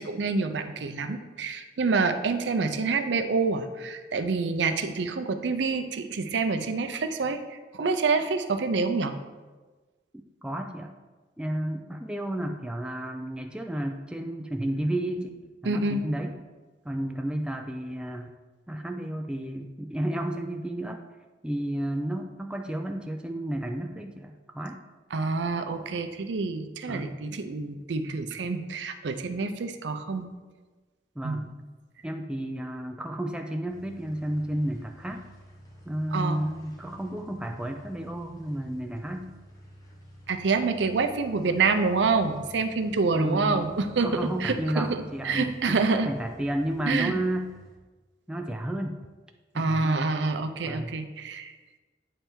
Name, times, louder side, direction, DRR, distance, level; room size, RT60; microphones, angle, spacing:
voice 1, 0.0-9.1 15.6-16.0 25.1-30.3 31.2-31.5 36.1-36.4 40.3-44.1 44.4-46.1 46.9-47.1 49.5-51.5, right 4 dB, 75° right, 8 dB, 0.5 m, -27 dB
voice 2, 10.4-10.9 11.4-16.3 16.8-18.3 18.7-21.0 21.4-24.8 26.9-27.2 31.2-31.5 32.0-35.3 35.9-39.4 43.1-47.5 48.3-49.0 49.5-50.1 50.6-51.0, right 1 dB, 5° right, 4 dB, 0.3 m, -32 dB
sound 1, 33.7-47.8, equal, 20° left, 1.0 m, -51 dB
8.8 x 3.3 x 4.5 m, 1.3 s
head